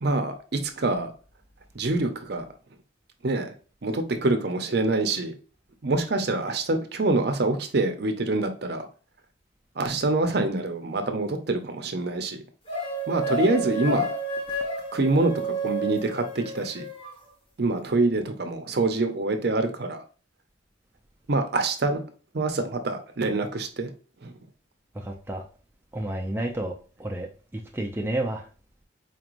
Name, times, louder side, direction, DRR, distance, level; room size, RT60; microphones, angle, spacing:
voice 1, 0.0-1.1 1.7-2.4 3.2-3.5 3.8-5.3 5.8-8.9 9.8-12.4 13.1-14.1 14.9-15.3 15.6-16.9 17.6-20.0 21.3-22.0 22.3-23.9 24.2-24.3, right 2 dB, 55° right, 0.6 m, -25 dB
sound 1, 12.7-17.2, right 1 dB, 30° left, 1.0 m, -30 dB
voice 2, 25.0-25.4 25.9-26.7 27.0-27.3 27.7-28.4, right 1 dB, 10° right, 0.4 m, -30 dB
4.3 x 3.1 x 2.5 m
head